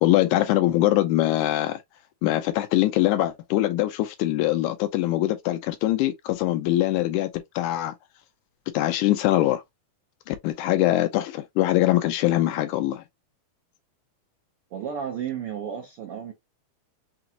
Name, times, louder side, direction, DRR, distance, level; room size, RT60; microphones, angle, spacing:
voice 1, 0.0-1.8 2.2-8.0 8.7-9.6 10.3-13.0, left 15 dB, 80° left, 1.9 m, -23 dB
voice 2, 14.7-16.3, right 8 dB, 80° right, 1.2 m, -32 dB
5.9 x 2.3 x 2.7 m
omnidirectional pair, 3.7 m